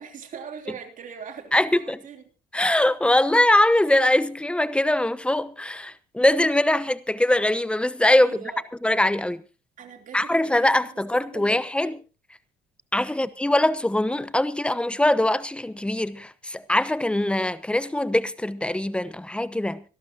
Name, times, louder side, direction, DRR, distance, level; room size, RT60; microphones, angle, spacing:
voice 1, 0.0-2.2 8.2-8.6 9.8-12.0 13.1-13.3, right 7 dB, 50° right, 3.2 m, -42 dB
voice 2, 1.5-2.0 2.5-8.4 8.8-9.4 10.1-12.0 12.9-19.8, left 1 dB, 5° left, 0.9 m, -22 dB
25.5 x 12.0 x 2.8 m
cardioid pair, 110°, 17 cm